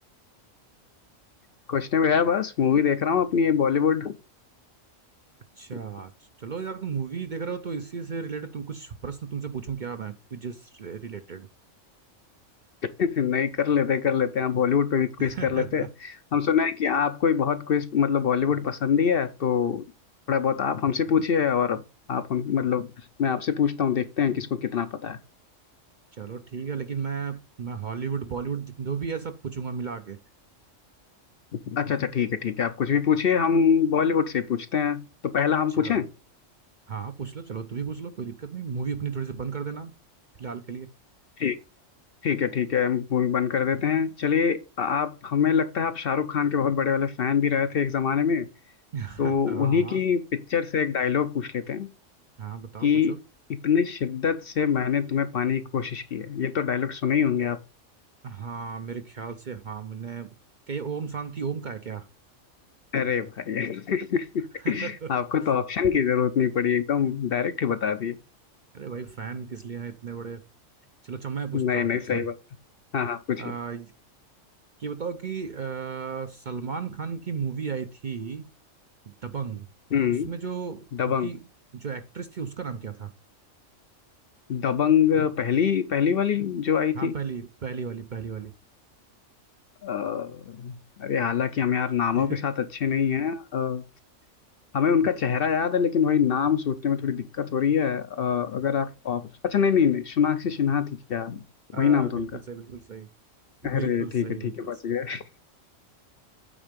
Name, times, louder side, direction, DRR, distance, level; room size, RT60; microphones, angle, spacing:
voice 1, 1.7-4.1 13.0-19.8 20.3-21.8 22.1-22.9 23.2-25.2 31.5-36.1 41.4-41.6 42.2-48.5 49.2-51.9 52.8-53.2 53.5-57.6 62.9-68.2 71.5-72.3 72.9-73.5 79.9-80.3 81.0-81.3 84.5-87.1 89.8-93.8 94.7-101.4 101.7-102.3 103.6-105.4, left 7 dB, 55° left, 0.7 m, -24 dB
voice 2, 5.6-6.1 6.4-11.5 15.2-15.9 26.1-30.2 35.7-36.0 36.9-39.9 40.4-40.9 48.9-50.0 52.4-53.2 58.2-60.3 60.7-62.1 64.6-65.1 68.7-70.4 71.0-72.3 73.4-73.9 74.8-78.5 79.1-79.7 80.2-81.5 81.7-83.1 86.9-88.5 92.1-92.5 101.7-103.1 103.6-104.7, right 6 dB, 50° right, 0.6 m, -34 dB
8.8 x 4.4 x 5.1 m
omnidirectional pair, 1.3 m